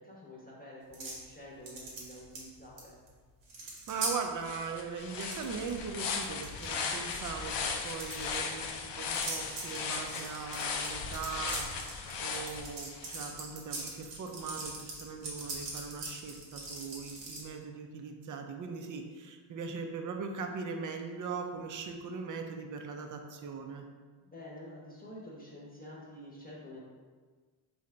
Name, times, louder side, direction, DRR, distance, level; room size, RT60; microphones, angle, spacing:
voice 1, 0.0-3.0 24.2-26.8, left 1 dB, 20° left, -5 dB, 0.9 m, -48 dB
sound 1, 0.9-1.2 1.7-2.8 3.1-3.2 3.4-4.1 5.0-5.7 6.0-6.8 7.8-8.4 9.1-17.4, right 2 dB, 85° right, 1.2 m, -41 dB
voice 2, 3.6-23.9, right 5 dB, 45° right, 4 dB, 0.6 m, -40 dB
sound 2, 4.0-4.1 4.4-13.2, left 5 dB, 75° left, 0.6 m, -37 dB
3.9 x 2.4 x 4.3 m, 1.5 s
cardioid pair, 80°, 43 cm